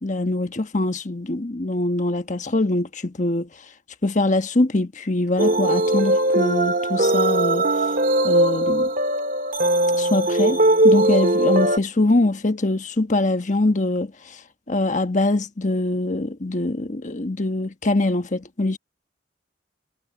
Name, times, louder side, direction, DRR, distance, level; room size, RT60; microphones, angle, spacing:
voice 1, 0.0-3.5 4.0-7.6 8.2-8.9 9.9-14.4 14.7-18.8, left 2 dB, 40° left, 1.2 m, -23 dB
sound 1, 5.4-11.8, right 1 dB, 50° right, 2.5 m, -19 dB
head